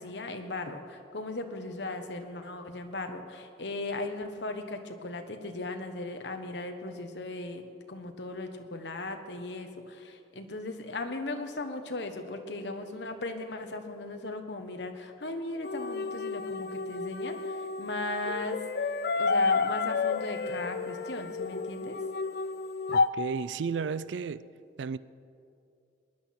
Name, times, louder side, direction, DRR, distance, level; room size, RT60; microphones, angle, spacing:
voice 1, 0.0-7.6 7.9-18.6 19.2-22.0, left 2 dB, 75° left, 1.3 m, -37 dB
sound 1, 15.6-23.1, left 4 dB, 55° left, 0.4 m, -30 dB
voice 2, 22.9-24.4 24.8-25.0, right 5 dB, 85° right, 0.4 m, -33 dB
19.5 x 10.5 x 5.9 m
head